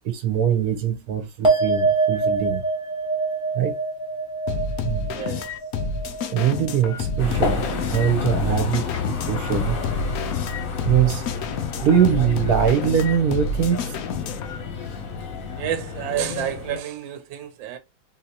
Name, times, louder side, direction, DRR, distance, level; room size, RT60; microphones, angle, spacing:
voice 1, 0.0-2.6 3.5-3.7 4.8-5.1 6.3-7.6 7.9-9.8 10.8-11.3 11.8-13.9, right 8 dB, 60° right, 1.2 m, -22 dB
sound 1, 1.4-8.1 8.4-9.1, right 4 dB, 5° right, 0.9 m, -26 dB
sound 2, 4.5-14.6, left 4 dB, 80° left, 0.8 m, -29 dB
sound 3, 7.2-16.8, left 5 dB, 55° left, 1.0 m, -30 dB
voice 2, 15.6-17.8, right 11 dB, 75° right, 1.4 m, -29 dB
3.9 x 2.8 x 2.8 m
omnidirectional pair, 2.1 m